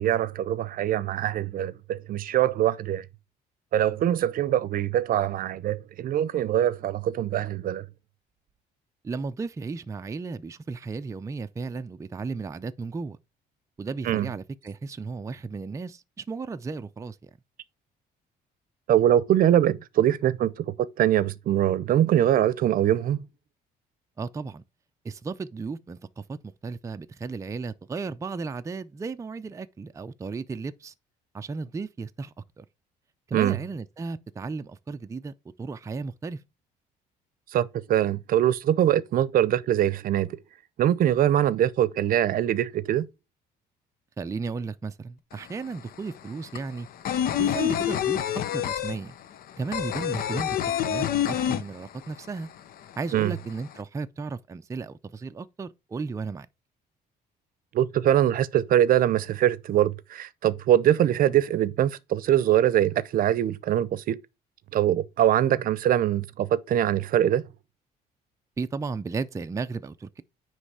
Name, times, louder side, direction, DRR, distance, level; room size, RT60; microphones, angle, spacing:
voice 1, 0.0-3.0 3.7-7.8 14.0-14.3 18.9-20.6 21.0-23.2 33.3-33.6 37.5-40.4 40.8-43.1 53.1-53.3 57.7-64.2 64.7-67.4, right 11 dB, 55° right, 0.7 m, -23 dB
voice 2, 9.0-13.2 13.8-17.3 24.2-24.6 25.0-26.4 26.6-30.9 31.3-32.6 33.3-35.3 35.6-36.4 44.2-46.9 47.4-48.2 48.5-49.2 49.6-52.5 53.0-56.5 68.6-70.2, right 4 dB, 20° right, 0.5 m, -34 dB
sound 1, 45.3-45.4 45.7-52.3 52.5-52.6 52.9-53.7, left 10 dB, 60° left, 0.7 m, -27 dB
9.7 x 3.3 x 4.8 m
cardioid pair, 110°, 17 cm